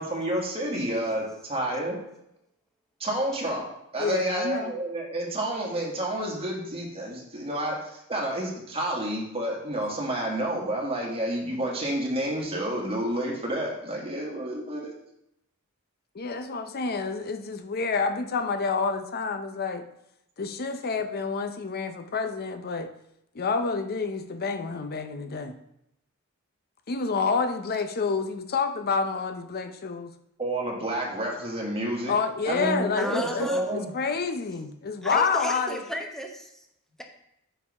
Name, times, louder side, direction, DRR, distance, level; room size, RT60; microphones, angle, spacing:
voice 1, 0.0-2.0 3.0-3.7 3.9-14.9 30.4-32.1 32.4-33.9, right 1 dB, 25° right, -2 dB, 1.5 m, -29 dB
voice 2, 4.0-4.7 16.1-19.8 20.4-22.9 23.4-25.6 26.9-30.1 32.1-35.8, left 4 dB, 45° left, 8 dB, 0.6 m, -28 dB
voice 3, 33.0-33.7 35.0-36.6, equal, ahead, 2 dB, 0.7 m, -33 dB
5.5 x 4.6 x 4.7 m, 0.80 s
head